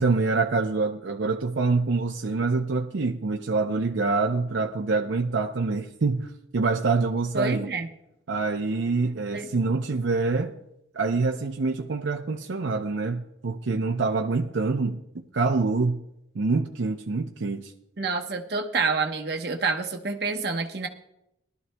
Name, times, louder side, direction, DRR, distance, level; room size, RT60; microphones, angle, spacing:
voice 1, 0.0-7.7 8.3-10.5 10.9-16.0 16.3-17.7, right 3 dB, 75° right, 0.6 m, -26 dB
voice 2, 7.3-7.9 9.3-9.5 18.0-20.9, right 4 dB, 55° right, 1.0 m, -28 dB
19.5 x 12.5 x 2.2 m
head